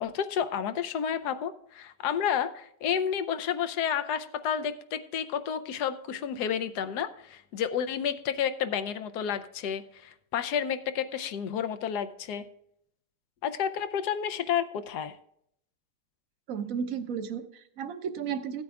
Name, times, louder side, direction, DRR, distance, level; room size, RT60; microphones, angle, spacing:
voice 1, 0.0-12.4 13.4-15.2, left 8 dB, 75° left, 11 dB, 1.2 m, -31 dB
voice 2, 16.5-18.6, right 7 dB, 60° right, 8 dB, 1.1 m, -33 dB
16.5 x 8.6 x 2.3 m, 0.71 s
omnidirectional pair, 1.8 m